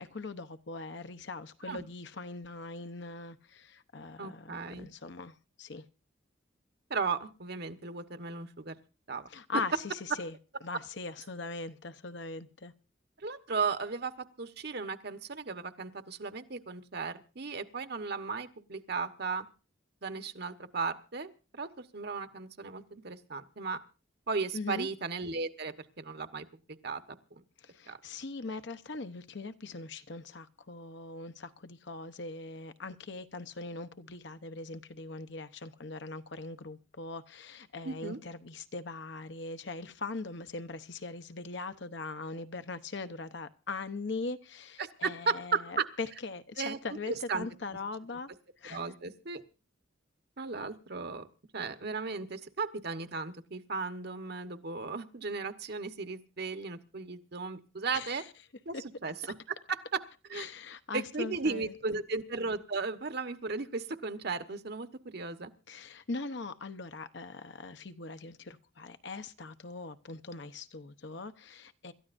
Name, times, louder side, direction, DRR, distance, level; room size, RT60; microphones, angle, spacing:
voice 1, 0.0-5.8 9.3-10.4 10.6-12.7 24.5-24.9 27.6-48.3 48.6-48.8 57.9-58.3 58.7-58.8 60.3-62.0 65.7-71.9, left 3 dB, 60° left, 0.9 m, -41 dB
voice 2, 4.2-4.9 6.9-8.7 9.1-9.3 13.2-19.5 20.0-23.8 24.3-26.5 26.8-27.4 27.9-28.0 37.8-38.2 44.8-45.8 46.6-46.8 47.1-47.4 48.7-49.4 50.4-51.3 51.5-58.2 58.7-58.8 59.0-59.1 59.7-59.8 60.3-60.5 60.9-64.9 65.1-65.5, right 4 dB, 55° right, 1.2 m, -36 dB
27.0 x 13.5 x 2.6 m
head